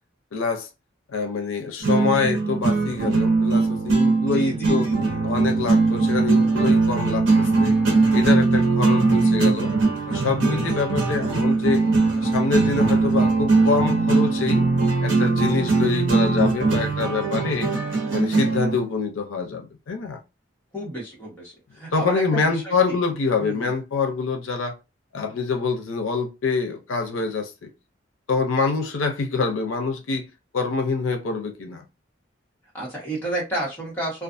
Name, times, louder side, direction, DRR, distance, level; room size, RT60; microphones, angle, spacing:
voice 1, 0.3-0.7 1.1-4.9 5.2-7.7 8.1-9.7 10.1-11.8 12.1-14.7 15.0-17.7 18.1-20.2 21.9-24.8 25.1-27.7 28.3-30.3 30.5-31.8, left 4 dB, 85° left, 0.5 m, -25 dB
sound 1, 1.8-18.8, right 3 dB, 75° right, 0.8 m, -20 dB
voice 2, 4.3-4.9 20.7-21.3 21.8-22.9 23.4-23.7 32.7-34.2, right 2 dB, 10° left, 1.1 m, -30 dB
2.5 x 2.3 x 2.5 m
head